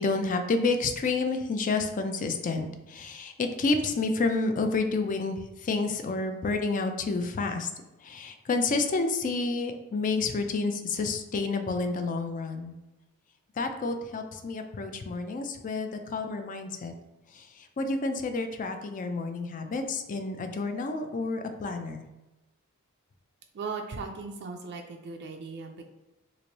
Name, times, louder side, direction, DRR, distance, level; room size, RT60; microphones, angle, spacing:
voice 1, 0.0-7.7 8.0-12.7 13.6-16.9 17.3-22.0, left 3 dB, 40° left, 6 dB, 0.4 m, -29 dB
voice 2, 23.5-25.9, right 4 dB, 50° right, 3 dB, 0.4 m, -38 dB
3.1 x 2.5 x 3.9 m, 1.0 s
head